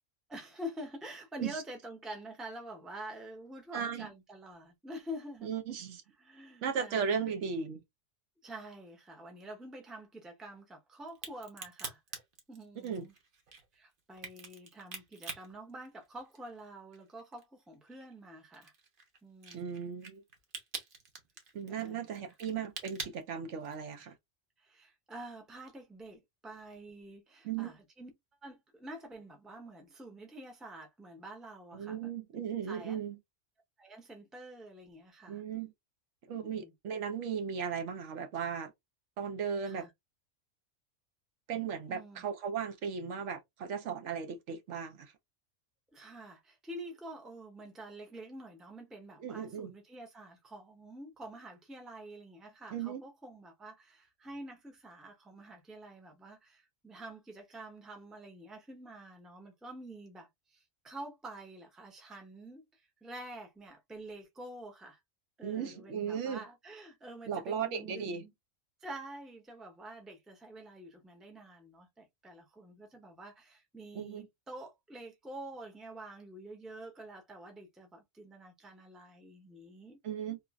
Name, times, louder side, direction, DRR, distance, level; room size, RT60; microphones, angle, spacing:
voice 1, 0.3-5.5 6.2-7.3 8.4-12.0 12.5-13.1 13.7-18.7 19.2-19.7 21.7-22.3 24.0-24.1 24.6-28.1 28.4-32.0 32.7-33.0 33.8-35.4 36.4-36.7 39.6-39.9 41.9-42.2 45.9-65.0 65.4-68.3 68.8-80.0, right 1 dB, ahead, 0.6 m, -47 dB
voice 2, 3.7-4.1 5.4-6.0 6.6-7.8 12.8-13.1 19.5-20.2 21.5-24.2 27.4-27.7 31.7-33.2 35.3-35.7 36.3-38.7 39.2-39.9 41.5-45.1 49.2-49.7 52.7-53.1 65.4-66.4 67.3-68.2 73.9-74.3 80.0-80.4, right 7 dB, 75° right, 1.0 m, -36 dB
Crack, 11.1-16.6 16.9-23.9, right 4 dB, 50° right, 1.0 m, -46 dB
3.1 x 2.4 x 2.3 m
omnidirectional pair, 1.3 m